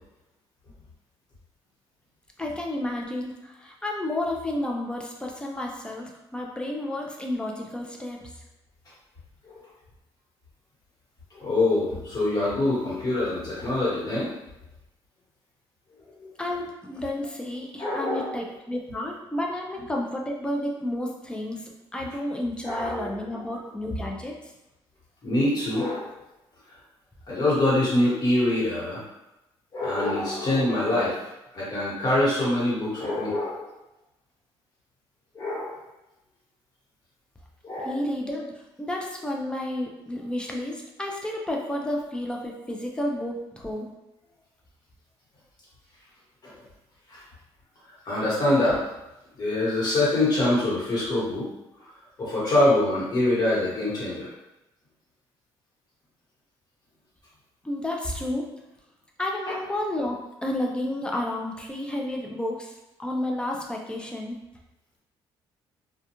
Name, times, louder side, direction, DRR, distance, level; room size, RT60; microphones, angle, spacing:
voice 1, 2.4-8.4 16.4-24.5 37.8-43.9 57.6-58.5 59.2-60.2 60.4-62.7 63.0-64.4, left 1 dB, 10° left, 0 dB, 0.5 m, -31 dB
voice 2, 11.3-14.3 16.2-16.3 17.8-18.3 22.6-23.2 25.2-26.1 27.3-29.0 29.7-33.7 35.3-35.8 37.6-38.0 46.4-46.5 47.1-47.2 48.0-48.8 49.4-51.5 51.8-51.9 52.2-54.3 59.5-59.6, left 1 dB, 40° left, -7 dB, 1.3 m, -25 dB
2.3 x 2.2 x 2.9 m, 0.95 s
cardioid pair, 100°, 10 cm